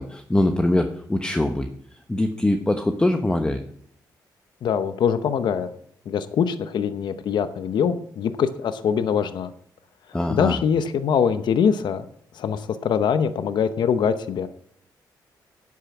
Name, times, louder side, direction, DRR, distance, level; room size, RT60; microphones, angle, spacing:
voice 1, 0.0-1.7 2.1-3.6 10.1-10.6, left 1 dB, 10° left, 6 dB, 0.9 m, -22 dB
voice 2, 4.6-5.7 6.1-9.5 10.3-12.0 12.3-14.5, left 7 dB, 70° left, 11 dB, 0.8 m, -23 dB
10.0 x 8.5 x 6.0 m, 0.66 s
cardioid pair, 90°, 8 cm